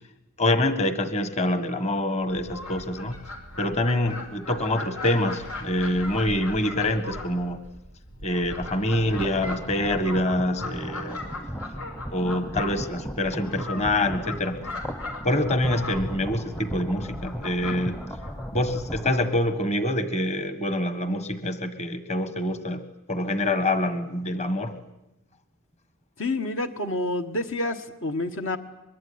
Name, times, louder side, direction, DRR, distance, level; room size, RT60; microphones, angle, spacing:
voice 1, 0.4-3.2 3.6-7.6 8.2-11.2 12.1-14.7 15.2-18.0 18.5-24.8, left 1 dB, 30° left, 10 dB, 1.7 m, -26 dB
Fowl, 2.2-19.5, left 2 dB, 85° left, 5.4 m, -39 dB
sound 1, 8.6-19.1, equal, 10° left, 0.9 m, -37 dB
voice 2, 26.2-28.6, left 2 dB, 60° left, 6 dB, 1.6 m, -28 dB
24.0 x 22.5 x 9.7 m, 0.88 s
head